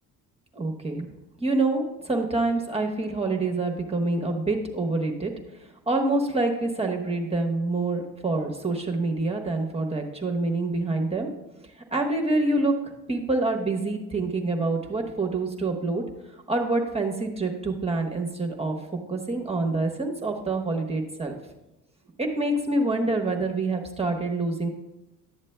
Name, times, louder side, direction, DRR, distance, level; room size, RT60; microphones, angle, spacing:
voice 1, 0.5-1.1 1.4-5.3 5.9-11.3 11.9-12.8 13.1-16.0 16.5-21.4 22.2-24.7, right 2 dB, 15° right, 1 dB, 1.1 m, -26 dB
11.5 x 7.2 x 2.2 m, 0.97 s
supercardioid pair, 65°, 36 cm